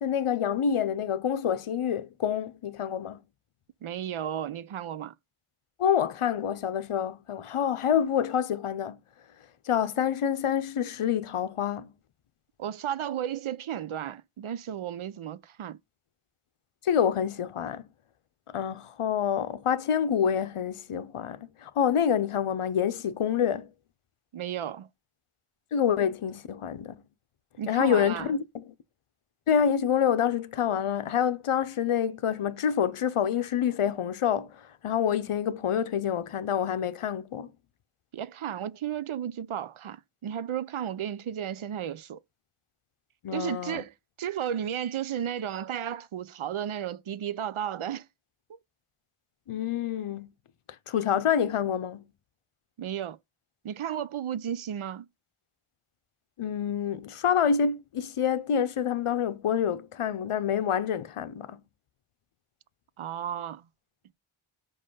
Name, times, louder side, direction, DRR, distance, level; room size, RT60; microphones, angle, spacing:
voice 1, 0.0-3.2 5.8-9.0 9.6-11.9 16.8-17.8 18.5-23.7 25.7-27.0 27.7-28.7 29.5-37.5 43.2-43.8 49.5-50.3 50.9-52.1 56.4-61.6, left 8 dB, 90° left, 0.7 m, -27 dB
voice 2, 3.8-5.1 12.6-15.8 24.3-24.9 27.6-28.3 38.1-42.2 43.3-48.1 48.5-48.6 52.8-53.2 53.6-55.1 63.0-63.7, right 9 dB, 75° right, 0.6 m, -33 dB
5.4 x 5.4 x 5.4 m
wide cardioid pair, 60°, 49 cm